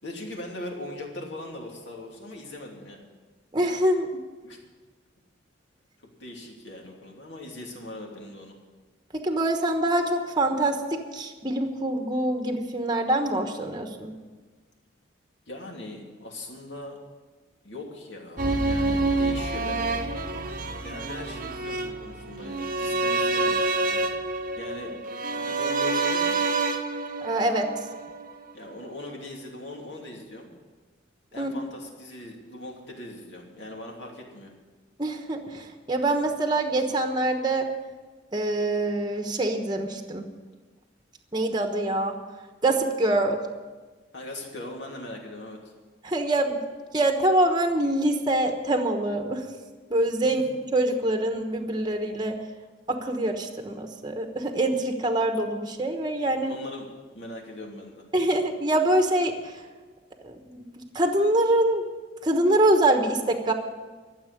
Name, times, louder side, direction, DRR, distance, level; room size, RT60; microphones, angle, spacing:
voice 1, 0.0-3.1 4.4-4.6 6.2-8.6 15.5-17.0 17.6-19.9 20.8-24.0 24.6-26.4 28.5-30.5 31.3-34.5 44.1-45.7 56.4-56.9 57.1-58.1, left 1 dB, 60° left, 0 dB, 2.8 m, -40 dB
voice 2, 3.5-4.1 9.1-14.1 27.2-27.7 31.4-31.5 35.0-37.7 38.3-40.3 41.3-42.2 42.6-43.4 46.0-46.6 46.9-49.4 49.9-50.4 50.7-52.4 52.9-56.5 58.1-59.6 60.2-61.8 62.2-63.5, right 1 dB, 20° right, 5 dB, 1.2 m, -25 dB
sound 1, 18.4-28.5 28.8-28.9, right 3 dB, 45° right, 0.9 m, -27 dB
13.5 x 7.5 x 9.9 m, 1.4 s
head